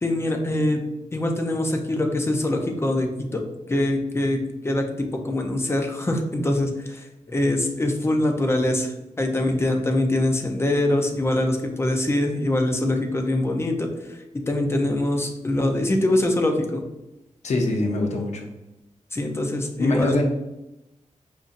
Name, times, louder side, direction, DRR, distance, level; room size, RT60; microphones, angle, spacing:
voice 1, 0.0-0.9 1.1-16.8 19.1-20.1, left 1 dB, 20° left, 3 dB, 0.4 m, -24 dB
voice 2, 17.4-18.5 19.8-20.2, left 2 dB, 60° left, 2 dB, 0.6 m, -23 dB
5.1 x 2.7 x 2.4 m, 0.93 s
wide cardioid pair, 160°, 13 cm